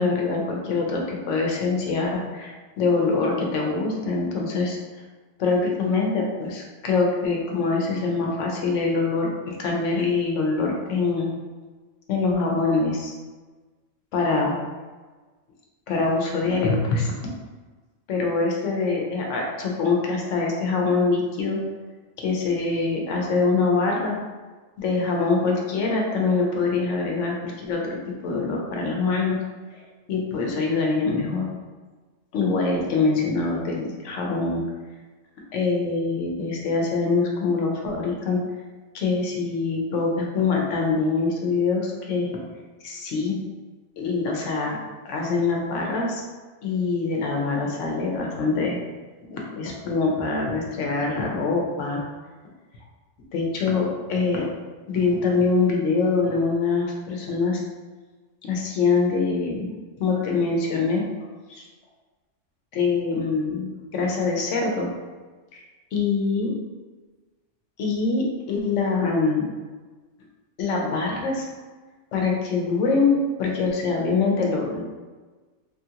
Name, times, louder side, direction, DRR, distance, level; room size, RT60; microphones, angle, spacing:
voice 1, 0.0-4.8 5.4-11.3 12.1-13.1 14.1-14.6 15.9-17.1 18.1-21.6 22.2-24.2 24.8-27.8 28.2-29.4 29.7-29.8 30.1-31.5 32.3-34.6 35.5-38.4 38.9-42.3 42.8-43.4 44.0-44.8 45.0-46.2 46.6-48.8 49.3-52.0 53.3-54.5 54.9-57.6 58.4-59.7 60.0-61.0 61.5-61.6 62.7-64.9 65.5-65.6 65.9-66.5 67.8-69.5 70.6-71.5 72.1-74.8, left 4 dB, 90° left, -1 dB, 1.0 m, -24 dB
3.2 x 2.4 x 2.8 m, 1.3 s
omnidirectional pair, 1.2 m